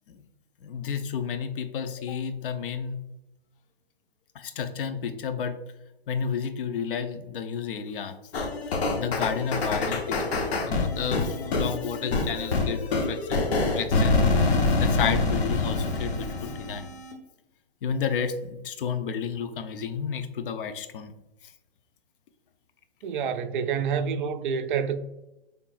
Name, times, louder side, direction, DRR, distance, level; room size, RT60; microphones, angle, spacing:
voice 1, 0.6-3.0 4.3-5.6 6.1-8.2 8.7-14.2 14.8-16.9 17.8-21.1, left 7 dB, 60° left, 0.6 m, -31 dB
sound 1, 8.3-17.1, left 3 dB, 85° left, 1.1 m, -26 dB
voice 2, 23.0-25.0, right 6 dB, 55° right, 0.5 m, -28 dB
5.6 x 3.3 x 2.4 m
hypercardioid pair, 150°, 31 cm